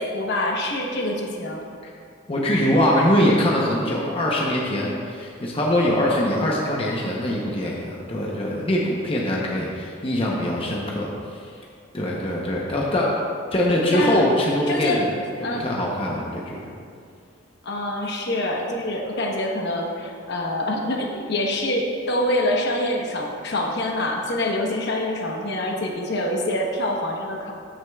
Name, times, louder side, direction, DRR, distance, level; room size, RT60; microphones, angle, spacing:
voice 1, 0.0-1.6 13.9-14.3 14.7-15.1 15.4-15.7 17.6-27.5, left 1 dB, 55° left, 0 dB, 1.0 m, -25 dB
voice 2, 2.3-11.4 11.9-13.1 13.5-15.1 15.6-16.6, left 1 dB, 30° left, -3 dB, 0.8 m, -23 dB
13.5 x 6.3 x 2.3 m, 2.3 s
head